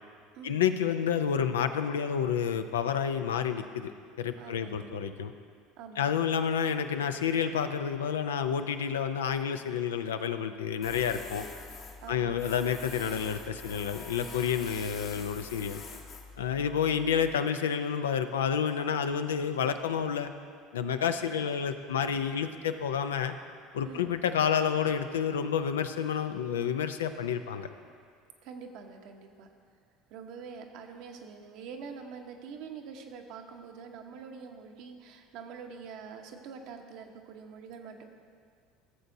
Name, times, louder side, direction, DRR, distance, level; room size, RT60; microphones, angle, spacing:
voice 1, 0.4-3.9 4.2-5.3 6.0-11.4 12.1-15.8 16.4-20.3 20.7-23.3 23.7-27.7, left 7 dB, 90° left, 9 dB, 0.4 m, -29 dB
voice 2, 4.4-4.9 5.8-6.1 12.0-12.4 23.8-24.1 28.4-29.5 30.1-38.1, right 6 dB, 65° right, 4 dB, 0.9 m, -45 dB
Tools, 10.8-17.3, left 4 dB, 50° left, 1.1 m, -45 dB
16.0 x 6.9 x 2.7 m, 2.1 s
hypercardioid pair, 75°, 0 cm